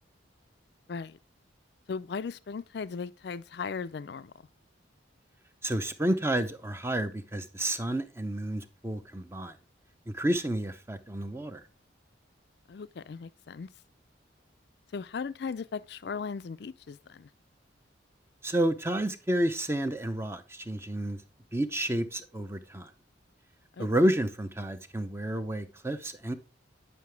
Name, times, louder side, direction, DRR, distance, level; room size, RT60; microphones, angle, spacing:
voice 1, 1.9-4.3 12.7-13.7 14.9-17.3 23.7-23.9, left 5 dB, 55° left, 0.4 m, -37 dB
voice 2, 5.6-9.5 10.1-11.6 18.4-21.2 21.5-22.9 23.8-26.3, right 1 dB, 15° right, 0.6 m, -30 dB
9.4 x 5.7 x 3.4 m
head